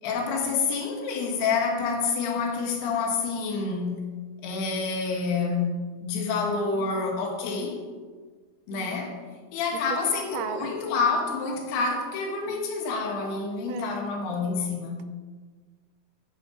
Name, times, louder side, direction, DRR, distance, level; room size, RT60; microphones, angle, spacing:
voice 1, 0.0-4.1 4.4-7.8 8.7-9.1 9.5-15.1, left 4 dB, 70° left, 3.1 m, -28 dB
voice 2, 10.3-10.7 12.5-12.6 13.7-14.0, right 10 dB, 85° right, 2.7 m, -36 dB
9.7 x 8.2 x 4.9 m
omnidirectional pair, 5.3 m